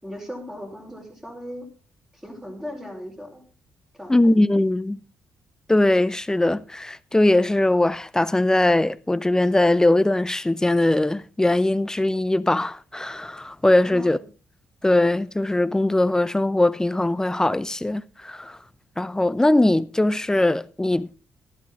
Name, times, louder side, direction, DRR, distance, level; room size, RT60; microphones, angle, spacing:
voice 1, 0.0-1.7 2.2-3.4 4.0-4.1 13.8-14.2, left 1 dB, 10° right, 4.6 m, -37 dB
voice 2, 4.1-5.0 5.7-14.2 14.8-18.6 19.0-21.2, left 1 dB, 10° left, 0.6 m, -21 dB
12.5 x 11.5 x 3.8 m
supercardioid pair, 70°, 5 cm